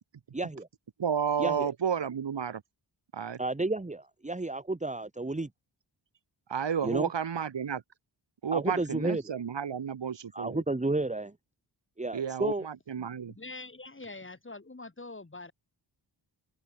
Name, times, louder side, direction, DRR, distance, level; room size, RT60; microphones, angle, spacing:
voice 1, 0.3-0.6 1.4-1.7 3.4-5.5 6.8-7.1 8.5-9.3 10.3-11.3 12.0-12.7, right 2 dB, 15° right, 1.7 m, -31 dB
voice 2, 1.0-2.6 3.1-3.4 6.5-7.8 8.4-10.6 12.1-13.3, right 7 dB, 65° right, 1.8 m, -31 dB
voice 3, 13.0-15.5, left 3 dB, 25° left, 4.9 m, -45 dB
open air
wide cardioid pair, 120°, 46 cm